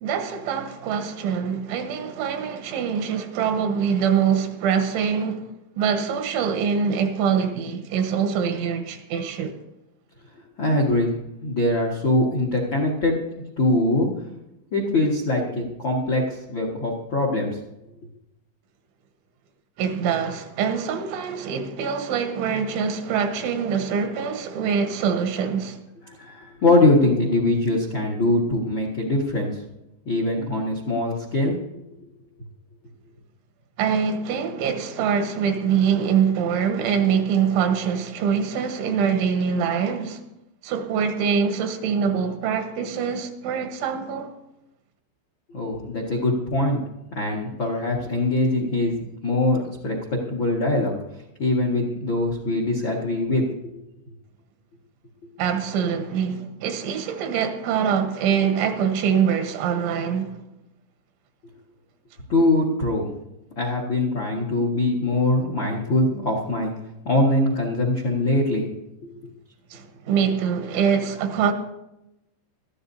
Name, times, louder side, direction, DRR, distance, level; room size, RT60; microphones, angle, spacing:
voice 1, 0.0-5.5 5.8-9.6 19.8-25.8 33.8-40.2 40.6-44.3 55.4-60.4 69.7-71.5, right 7 dB, 85° right, 3.6 m, -24 dB
voice 2, 10.6-11.1 11.4-13.1 13.6-14.1 14.7-17.6 26.1-29.5 30.0-31.5 45.5-46.8 47.1-49.0 49.2-50.9 51.4-53.4 62.3-63.1 63.6-66.7 67.0-68.7 69.0-69.3, left 2 dB, 65° left, 1.1 m, -22 dB
20.5 x 14.0 x 2.7 m
omnidirectional pair, 5.3 m